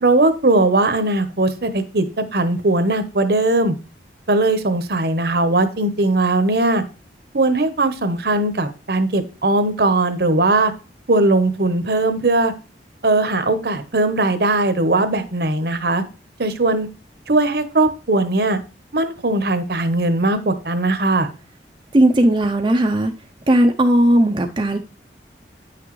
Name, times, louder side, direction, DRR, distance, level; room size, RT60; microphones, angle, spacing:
voice 1, 0.0-3.7 4.3-6.8 7.3-10.7 11.1-12.5 13.0-16.0 16.4-16.9 17.3-18.6 18.9-21.3, right 2 dB, 60° right, 0.9 m, -19 dB
voice 2, 21.9-23.1 23.5-24.8, right 1 dB, 25° right, 0.5 m, -16 dB
9.1 x 5.9 x 3.1 m
head